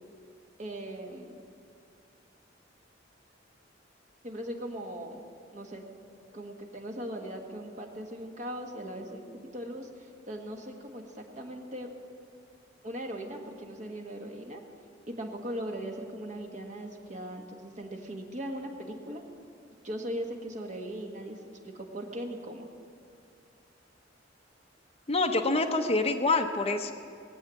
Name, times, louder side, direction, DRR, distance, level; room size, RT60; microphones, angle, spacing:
voice 1, 0.6-1.4 4.2-5.2 5.5-5.9 6.3-11.9 12.8-14.6 15.1-19.2 19.8-21.4 21.6-22.7, right 1 dB, 40° right, 2 dB, 1.7 m, -39 dB
voice 2, 25.1-26.9, left 3 dB, 30° left, 3 dB, 0.9 m, -26 dB
20.0 x 8.0 x 8.4 m, 2.4 s
head